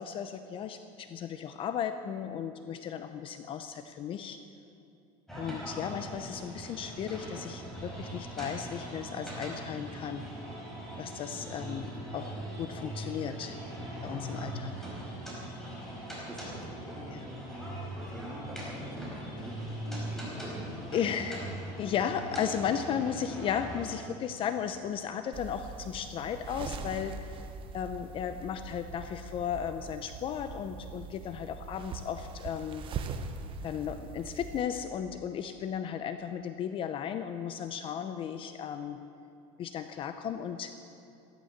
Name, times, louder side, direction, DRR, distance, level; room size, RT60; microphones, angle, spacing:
voice 1, 0.0-4.4 5.4-10.2 11.0-13.6 14.0-14.7 17.1-17.3 20.9-27.3 27.7-32.8 33.6-39.0 39.6-40.7, left 8 dB, 40° left, 9 dB, 0.7 m, -35 dB
sound 1, 5.3-24.0, right 1 dB, ahead, 4.8 m, -40 dB
voice 2, 16.0-19.6 20.1-20.8, right 1 dB, 15° right, 0 dB, 2.6 m, -46 dB
sound 2, 25.3-34.6, right 5 dB, 40° right, 1.1 m, -42 dB
15.0 x 13.0 x 7.3 m, 2.7 s
cardioid pair, 135°, 14 cm